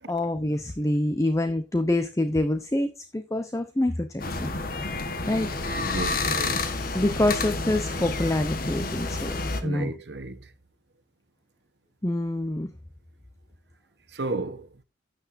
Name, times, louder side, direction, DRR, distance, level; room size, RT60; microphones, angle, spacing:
voice 1, 0.1-4.5 5.3-5.5 6.9-9.3 9.6-9.9 12.0-12.7, left 1 dB, 20° left, 0.8 m, -26 dB
sound 1, 4.2-9.6, left 3 dB, 55° left, 1.3 m, -29 dB
voice 2, 5.7-6.7 9.6-10.4 14.1-14.7, right 2 dB, 70° right, 1.1 m, -33 dB
12.5 x 9.2 x 2.6 m
head